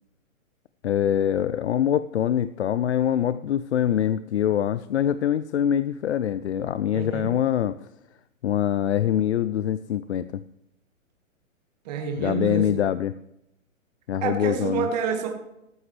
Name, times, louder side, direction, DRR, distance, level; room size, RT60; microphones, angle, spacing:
voice 1, 0.8-7.8 8.4-10.4 12.2-13.1 14.1-14.9, left 10 dB, 55° left, 14 dB, 0.5 m, -24 dB
voice 2, 6.9-7.3 11.9-12.7 14.2-15.3, right 6 dB, 30° right, 3 dB, 1.8 m, -28 dB
13.5 x 13.5 x 3.3 m, 0.83 s
hypercardioid pair, 170°, 40 cm